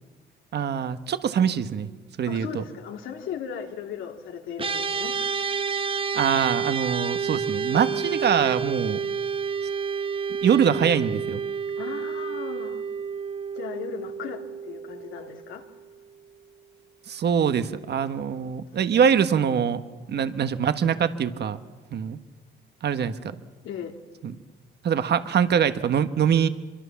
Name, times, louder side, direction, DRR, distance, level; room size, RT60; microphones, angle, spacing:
voice 1, 0.5-1.9 2.2-2.6 6.1-9.0 10.4-11.4 17.1-19.8 20.1-21.6 21.9-22.2 22.8-23.3 24.2-24.3 24.8-26.5, right 7 dB, 60° right, 10 dB, 1.4 m, -23 dB
voice 2, 2.3-5.1 11.8-12.8 13.5-15.6 23.6-23.9, left 8 dB, 85° left, 3 dB, 2.6 m, -37 dB
sound 1, 4.6-16.0, right 6 dB, 25° right, 0.8 m, -30 dB
25.0 x 23.0 x 7.2 m, 1.3 s
cardioid pair, 90°, 20 cm